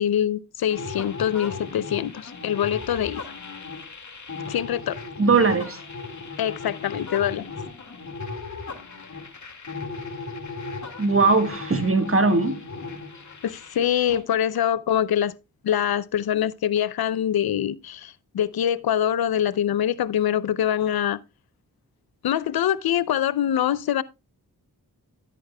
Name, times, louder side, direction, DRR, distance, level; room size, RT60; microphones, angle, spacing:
voice 1, 0.0-3.2 4.5-5.0 6.4-7.4 13.4-15.3 15.6-21.2 22.2-24.0, left 10 dB, 80° left, 0.6 m, -24 dB
sound 1, 0.7-14.2, left 4 dB, 50° left, 2.2 m, -36 dB
voice 2, 5.2-5.8 11.0-12.6, right 3 dB, 35° right, 1.5 m, -20 dB
14.0 x 8.4 x 2.2 m
cardioid pair, 55°, 36 cm